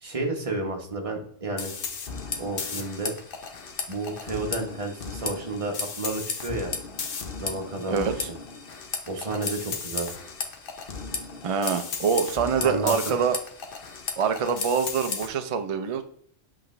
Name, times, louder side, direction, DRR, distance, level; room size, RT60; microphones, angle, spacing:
voice 1, 0.0-1.7 2.4-3.2 3.9-6.7 7.4-8.1 9.1-10.1 12.6-12.9, right 2 dB, 30° right, 1 dB, 1.1 m, -31 dB
sound 1, 1.6-15.3, left 5 dB, 50° left, 0.9 m, -35 dB
voice 2, 7.9-8.3 11.4-13.4 14.2-16.0, right 6 dB, 55° right, 7 dB, 0.3 m, -25 dB
7.9 x 3.7 x 3.2 m, 0.63 s
omnidirectional pair, 1.2 m